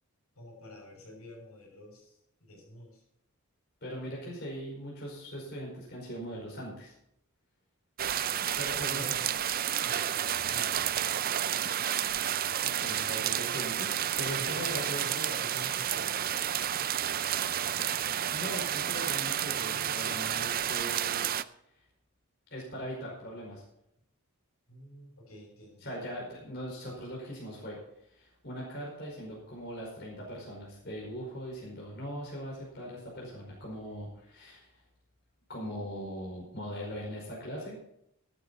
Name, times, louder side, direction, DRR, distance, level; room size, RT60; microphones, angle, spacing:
voice 1, 0.3-3.0 8.6-9.4 9.8-11.0 14.2-16.7 24.7-26.0, left 1 dB, 75° left, 0 dB, 6.6 m, -48 dB
voice 2, 3.8-6.9 8.6-9.2 12.6-15.0 18.3-21.3 22.5-23.6 25.8-34.8 35.5-37.8, equal, 45° left, -3 dB, 5.1 m, -40 dB
sound 1, 8.0-21.4, right 10 dB, 40° right, 0.5 m, -31 dB
14.5 x 12.0 x 4.3 m, 0.78 s
head